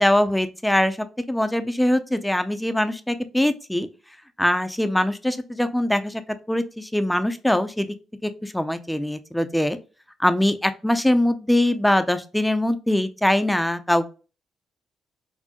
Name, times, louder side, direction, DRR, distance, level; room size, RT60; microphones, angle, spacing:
voice 1, 0.0-3.9 4.4-6.2 6.5-7.9 8.2-9.8 10.2-14.1, left 1 dB, 5° left, 10 dB, 0.4 m, -22 dB
4.3 x 2.0 x 2.8 m, 0.34 s
cardioid pair, 90°, 0 cm